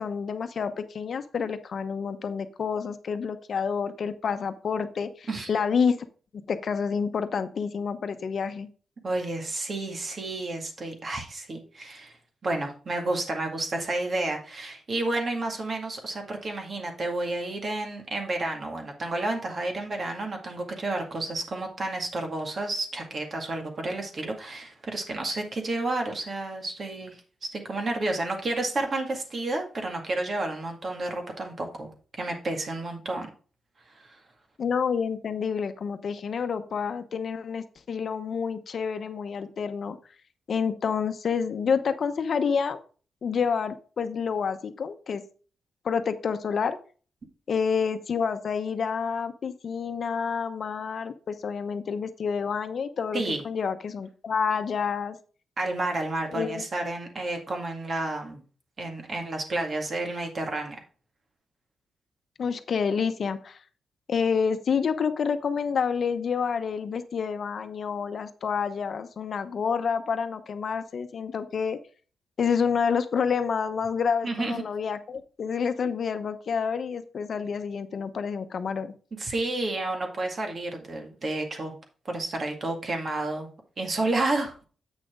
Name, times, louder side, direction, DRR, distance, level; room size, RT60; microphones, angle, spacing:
voice 1, 0.0-6.0 6.3-8.7 34.6-40.0 40.5-42.8 43.2-45.2 45.8-46.8 47.5-55.2 56.3-56.7 62.4-63.6 64.1-71.8 72.4-78.9, left 6 dB, 55° left, 9 dB, 0.9 m, -28 dB
voice 2, 9.0-12.2 12.4-33.3 33.9-34.2 53.1-53.4 55.6-58.4 58.8-60.8 74.2-74.6 79.2-81.8 82.1-83.5 83.8-84.5, right 2 dB, 40° right, 3 dB, 2.1 m, -31 dB
8.2 x 6.3 x 3.7 m, 0.39 s
cardioid pair, 110°, 0 cm